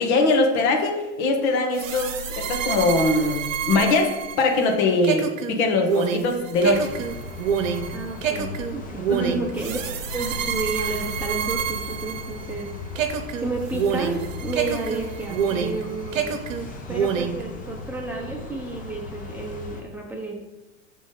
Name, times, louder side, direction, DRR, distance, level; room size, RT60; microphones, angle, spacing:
voice 1, 0.0-4.1 4.4-6.9 9.1-9.3, left 3 dB, 60° left, 3 dB, 1.4 m, -22 dB
sound 1, 1.7-12.6 13.0-15.8 16.1-17.4, right 7 dB, 80° right, 0.8 m, -27 dB
sound 2, 6.6-19.8, left 3 dB, 20° left, 0.9 m, -37 dB
voice 2, 7.9-9.8 10.1-12.7 13.4-16.4 16.9-20.4, right 3 dB, 5° right, -2 dB, 1.0 m, -31 dB
5.1 x 3.7 x 5.5 m, 1.0 s
hypercardioid pair, 110°, 38 cm